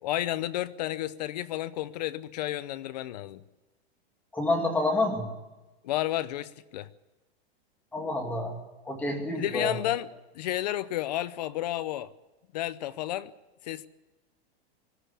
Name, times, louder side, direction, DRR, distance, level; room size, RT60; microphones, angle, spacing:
voice 1, 0.0-3.4 5.8-6.9 9.3-10.1 10.3-12.1 12.5-13.3 13.6-13.9, left 14 dB, 40° left, 16 dB, 0.7 m, -31 dB
voice 2, 4.3-5.3 7.9-8.6 8.8-9.8, left 2 dB, 5° left, 1 dB, 2.4 m, -28 dB
20.5 x 15.0 x 8.5 m, 1.1 s
supercardioid pair, 175°, 32 cm